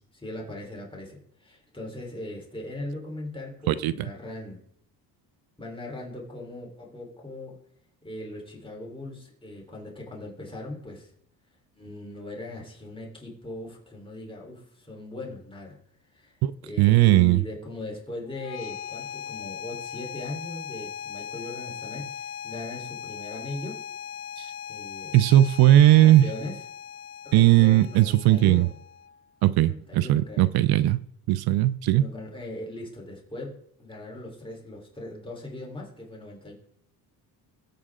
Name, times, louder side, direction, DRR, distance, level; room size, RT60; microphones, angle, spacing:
voice 1, 0.1-4.6 5.6-7.6 8.0-11.1 11.8-15.8 16.1-23.8 24.7-25.2 26.0-26.6 27.2-28.7 29.7-30.5 31.9-36.5, left 1 dB, 15° left, 3.9 m, -39 dB
voice 2, 16.8-17.4 24.4-24.5 25.1-26.3 27.3-28.7 29.4-31.0 31.3-32.0, right 14 dB, 70° right, 0.6 m, -18 dB
sound 1, 18.3-29.3, left 8 dB, 90° left, 1.0 m, -39 dB
22.5 x 8.6 x 3.7 m
cardioid pair, 110°, 38 cm